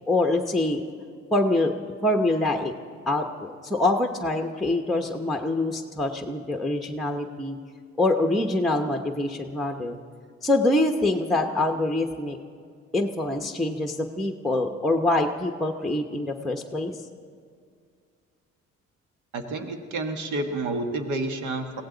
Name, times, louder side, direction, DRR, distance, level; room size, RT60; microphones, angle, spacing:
voice 1, 0.1-0.8 1.3-1.7 2.0-2.7 3.1-7.6 8.0-10.0 10.4-12.4 12.9-16.9, left 2 dB, ahead, 3 dB, 1.0 m, -25 dB
voice 2, 19.3-21.8, right 2 dB, 80° right, 5 dB, 1.6 m, -29 dB
22.5 x 16.5 x 4.0 m, 2.1 s
cardioid pair, 90°, 30 cm